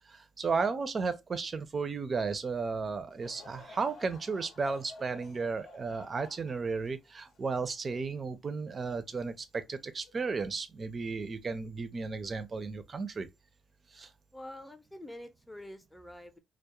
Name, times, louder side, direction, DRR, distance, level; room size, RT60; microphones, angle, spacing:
voice 1, 0.1-13.3 13.9-14.1, right 4 dB, 40° right, 0.4 m, -34 dB
Laughter / Crowd, 3.1-8.6 9.1-9.2 10.0-10.3, left 3 dB, 65° left, 0.7 m, -53 dB
voice 2, 14.3-16.4, left 1 dB, 10° left, 0.6 m, -46 dB
2.3 x 2.0 x 2.8 m
cardioid pair, 90°, 0 cm